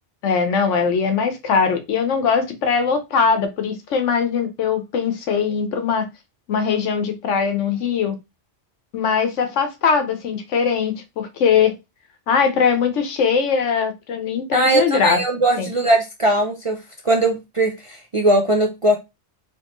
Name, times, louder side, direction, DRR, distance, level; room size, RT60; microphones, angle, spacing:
voice 1, 0.2-6.1 6.5-8.2 8.9-11.7 12.3-15.2 15.6-15.7, left 6 dB, 80° left, 1.1 m, -20 dB
voice 2, 14.5-16.8 17.0-19.0, right 1 dB, 45° right, 0.4 m, -19 dB
4.4 x 3.0 x 3.0 m
omnidirectional pair, 1.2 m